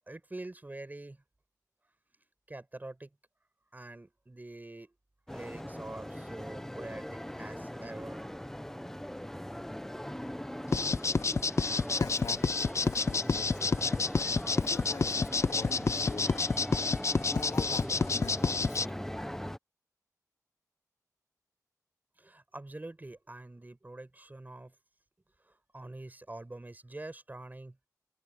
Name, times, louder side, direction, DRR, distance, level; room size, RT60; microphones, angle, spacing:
voice 1, 0.1-1.2 2.5-3.1 3.7-4.9 5.3-8.2 22.2-24.7 25.5-27.8, right 2 dB, 30° right, 5.4 m, -45 dB
sound 1, 5.3-19.6, equal, 5° left, 1.1 m, -40 dB
sound 2, 10.7-18.9, left 4 dB, 50° left, 0.6 m, -28 dB
voice 2, 12.0-12.6 12.8-14.2 14.6-16.5 17.3-18.8, left 5 dB, 85° left, 2.4 m, -44 dB
open air
wide cardioid pair, 70°, 6 cm